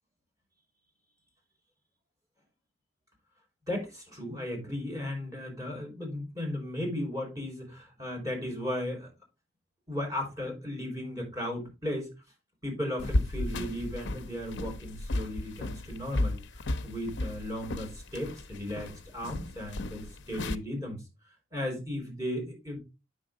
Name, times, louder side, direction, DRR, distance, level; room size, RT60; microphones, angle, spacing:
voice 1, 3.7-9.1 9.9-12.1 12.6-21.0 21.5-22.8, left 1 dB, 15° right, 0 dB, 4.7 m, -36 dB
sound 1, 13.0-20.6, left 1 dB, 55° left, 0.7 m, -34 dB
8.8 x 6.3 x 3.7 m, 0.27 s
head